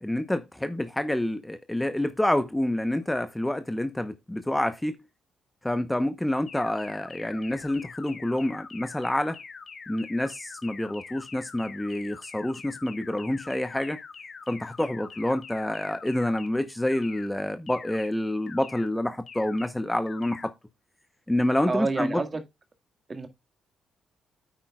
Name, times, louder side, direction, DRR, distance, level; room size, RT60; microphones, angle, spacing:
voice 1, 0.0-4.9 5.6-9.4 9.9-14.0 14.5-20.5 21.3-22.2, left 1 dB, 10° left, 0.9 m, -28 dB
sound 1, 6.5-16.5 16.9-17.3 17.7-18.1 18.5-18.9 19.3-19.7 20.1-20.5, left 5 dB, 45° left, 1.9 m, -44 dB
voice 2, 21.7-22.4 23.1-23.3, right 3 dB, 30° right, 1.9 m, -28 dB
9.0 x 8.9 x 2.3 m
cardioid pair, 90°, 0 cm